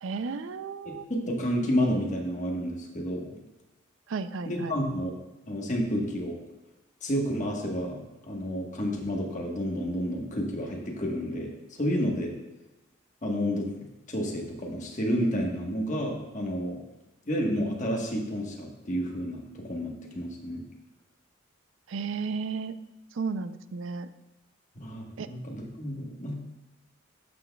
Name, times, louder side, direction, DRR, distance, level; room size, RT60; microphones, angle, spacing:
voice 1, 0.0-1.0 4.1-4.7 21.9-22.7 23.2-24.1 25.2-25.3, right 5 dB, 70° right, 12 dB, 0.4 m, -33 dB
voice 2, 0.8-3.4 4.4-5.1 5.5-6.4 7.0-8.0 8.3-11.5 11.8-12.3 13.2-16.8 17.3-20.6 24.8-26.3, equal, 35° left, -1 dB, 1.2 m, -30 dB
12.5 x 6.0 x 2.3 m, 1.0 s
head